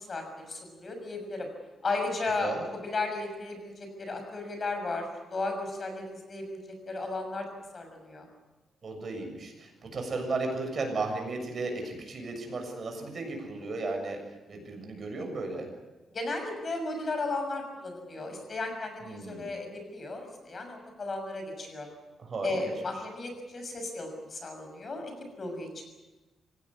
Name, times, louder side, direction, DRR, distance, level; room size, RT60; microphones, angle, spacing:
voice 1, 0.0-1.5 1.8-6.6 6.8-7.5 7.7-8.3 16.1-21.9 22.4-25.8, left 3 dB, 35° left, 5 dB, 6.5 m, -35 dB
voice 2, 8.8-14.2 14.5-15.7 19.0-19.5 22.2-22.7, right 3 dB, 40° right, 3 dB, 6.8 m, -35 dB
25.5 x 17.0 x 9.7 m, 1.2 s
cardioid pair, 135°, 0 cm